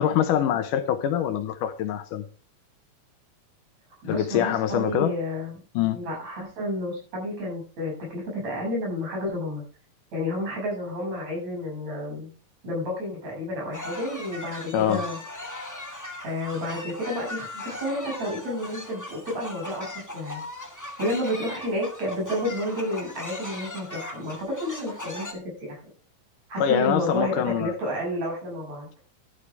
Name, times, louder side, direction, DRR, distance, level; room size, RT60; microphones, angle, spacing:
voice 1, 0.0-2.3 4.1-5.1 5.8-6.0 14.7-15.0 26.6-27.7, left 10 dB, 75° left, 2.3 m, -24 dB
voice 2, 4.0-9.6 10.1-12.3 12.6-15.2 16.2-20.4 21.0-25.8 26.5-28.9, left 1 dB, 50° right, 7.9 m, -30 dB
sound 1, 13.7-25.3, left 1 dB, 10° left, 1.2 m, -39 dB
12.5 x 11.5 x 3.4 m
omnidirectional pair, 4.0 m